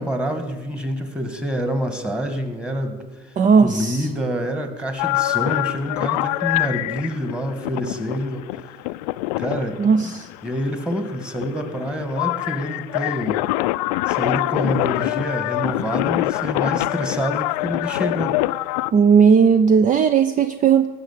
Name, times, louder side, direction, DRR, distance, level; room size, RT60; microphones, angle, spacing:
voice 1, 0.0-3.0 3.6-8.4 9.4-10.2 10.4-13.5 14.1-18.4, equal, 5° right, 7 dB, 2.1 m, -27 dB
voice 2, 3.4-4.1 9.8-10.3 18.9-20.9, right 6 dB, 40° right, 11 dB, 0.6 m, -16 dB
sound 1, 5.0-18.9, left 19 dB, 70° left, 0.4 m, -25 dB
16.0 x 6.6 x 8.2 m, 1.2 s
hypercardioid pair, 70°, 21 cm